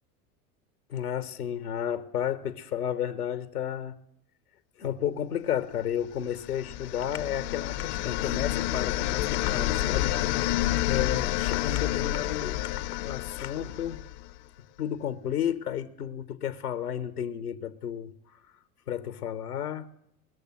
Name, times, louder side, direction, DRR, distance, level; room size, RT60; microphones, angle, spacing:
voice 1, 0.9-4.0 4.8-10.2 10.8-12.6 13.0-14.0 14.8-18.4 18.9-19.9, left 9 dB, 80° left, 0.8 m, -32 dB
sound 1, 6.3-14.3, left 15 dB, 50° left, 0.6 m, -29 dB
20.0 x 6.7 x 7.6 m
figure-of-eight pair, 75°, 45 cm